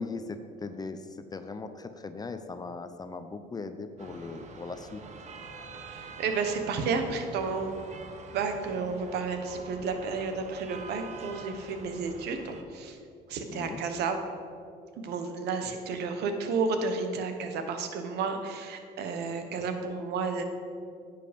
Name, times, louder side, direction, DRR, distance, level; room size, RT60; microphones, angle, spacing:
voice 1, 0.0-5.1 13.5-13.8, left 4 dB, 25° left, 9 dB, 0.6 m, -39 dB
sound 1, 4.0-12.6, right 4 dB, 45° right, 1.1 m, -46 dB
voice 2, 5.7-7.8 8.3-13.0 13.3-14.2 15.0-20.4, right 4 dB, 75° right, 6 dB, 1.2 m, -32 dB
10.0 x 7.7 x 5.2 m, 2.3 s
cardioid pair, 110°, 17 cm